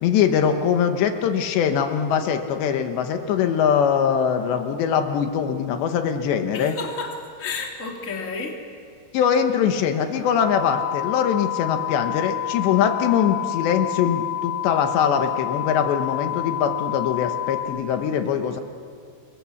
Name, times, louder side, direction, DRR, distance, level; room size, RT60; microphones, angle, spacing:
voice 1, 0.0-6.8 9.1-18.6, left 8 dB, 75° left, 6 dB, 3.3 m, -22 dB
voice 2, 6.5-8.6, left 4 dB, 20° left, 0 dB, 2.6 m, -31 dB
sound 1, 10.4-17.6, left 13 dB, 65° right, 5.8 m, -28 dB
29.5 x 23.0 x 7.1 m, 2.2 s
omnidirectional pair, 5.1 m